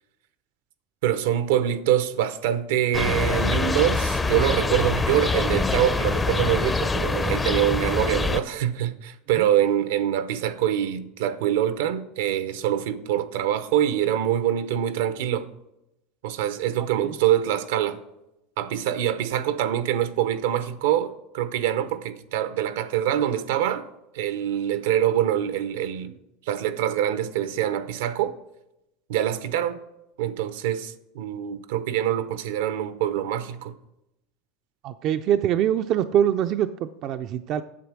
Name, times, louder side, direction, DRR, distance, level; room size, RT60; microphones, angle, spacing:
voice 1, 1.0-15.5 16.2-18.0 18.6-23.9 24.1-26.2 26.5-28.4 29.1-29.8 30.2-33.7, right 11 dB, 80° right, 0.8 m, -25 dB
sound 1, 2.9-8.4, left 3 dB, 15° left, 0.5 m, -24 dB
voice 2, 34.8-37.6, right 10 dB, 50° right, 0.4 m, -24 dB
8.5 x 7.2 x 6.1 m
supercardioid pair, 125°, 0 cm